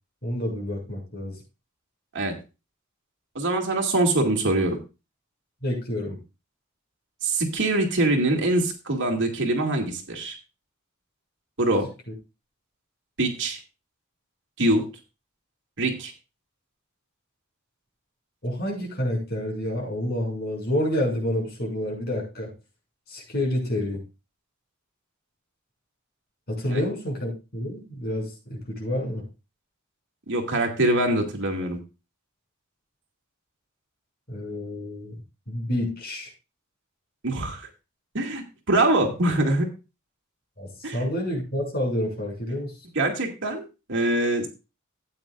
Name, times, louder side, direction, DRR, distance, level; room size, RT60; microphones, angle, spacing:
voice 1, 0.2-1.4 5.6-6.2 18.4-22.5 23.1-24.0 26.5-29.3 34.3-35.2 35.5-36.3 40.6-42.8, left 1 dB, 50° left, -1 dB, 6.2 m, -29 dB
voice 2, 3.4-4.8 7.2-10.3 11.6-11.9 13.2-13.6 14.6-14.8 15.8-16.1 26.7-26.8 30.3-31.8 37.2-37.7 38.1-39.7 40.8-41.0 43.0-43.6 43.9-44.5, right 2 dB, 60° right, 2 dB, 2.3 m, -23 dB
14.5 x 9.0 x 2.5 m, 0.29 s
head